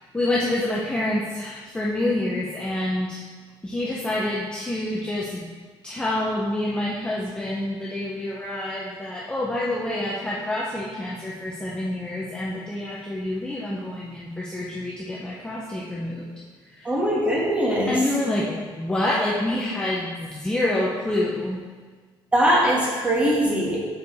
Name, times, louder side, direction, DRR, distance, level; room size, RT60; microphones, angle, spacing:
voice 1, 0.1-3.2 3.6-5.5 5.8-16.3 16.7-17.0 17.9-21.6, left 1 dB, 10° left, -6 dB, 0.6 m, -27 dB
voice 2, 16.8-17.9 22.3-23.8, equal, 15° right, -4 dB, 1.3 m, -21 dB
6.5 x 4.9 x 4.0 m, 1.5 s
cardioid pair, 165°, 10 cm